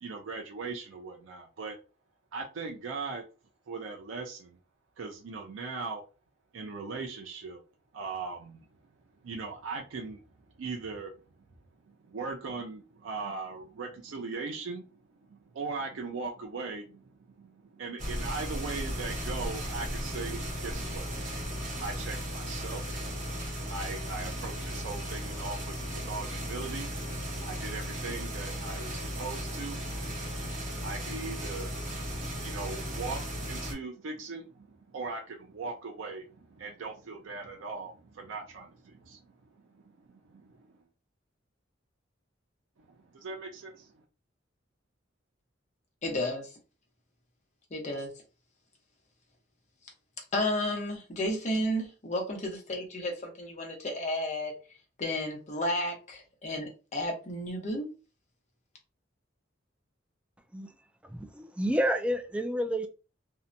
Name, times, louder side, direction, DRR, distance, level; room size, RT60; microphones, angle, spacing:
voice 1, 0.0-1.8 2.3-3.2 3.7-4.6 5.0-6.0 6.5-7.6 7.9-8.6 9.2-10.2 10.6-11.1 11.9-15.0 15.3-21.3 21.7-23.0 23.5-31.7 32.4-39.2 39.9-40.7 42.9-43.9, right 4 dB, 85° right, 3 dB, 0.4 m, -39 dB
sound 1, 18.0-33.7, equal, 45° right, 0.9 m, -36 dB
voice 2, 46.0-46.5 47.7-48.1 50.3-54.5 55.0-57.9, left 1 dB, 40° left, 2 dB, 0.8 m, -32 dB
voice 3, 61.0-62.9, equal, 5° right, 7 dB, 0.3 m, -29 dB
2.7 x 2.1 x 2.5 m, 0.33 s
head